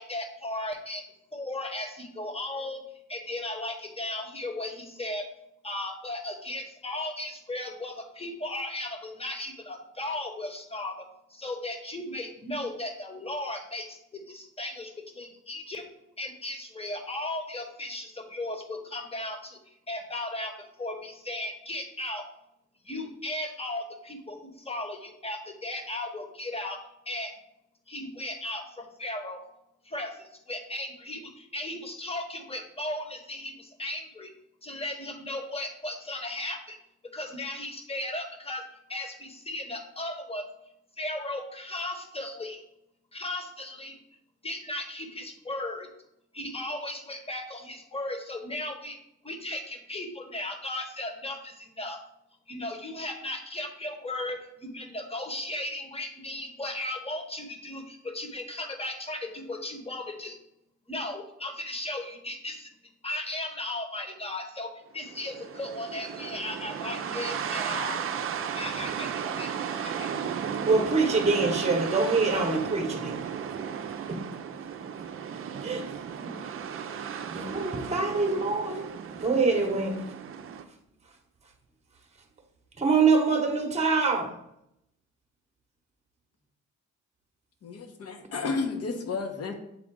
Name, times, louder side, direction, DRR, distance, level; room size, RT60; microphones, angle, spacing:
voice 1, 0.0-2.8 3.1-5.3 5.6-15.9 16.2-22.2 22.8-27.3 27.9-29.4 29.8-34.3 34.6-36.8 37.1-38.6 38.9-40.5 41.0-42.6 43.1-43.9 44.4-45.9 46.3-49.0 49.2-52.0 52.5-60.4 60.9-62.7 63.0-68.0 68.5-70.1, left 1 dB, 20° left, 1.2 m, -36 dB
sound 1, 65.0-80.6, right 7 dB, 45° right, 0.6 m, -35 dB
voice 2, 70.6-73.3 74.1-74.2 75.6-75.9 76.3-76.4 76.9-78.9 79.2-80.1 82.8-84.3, right 4 dB, 20° right, 1.0 m, -25 dB
voice 3, 87.6-89.5, left 4 dB, 55° left, 1.1 m, -32 dB
7.8 x 3.7 x 3.7 m
cardioid pair, 90°, 30 cm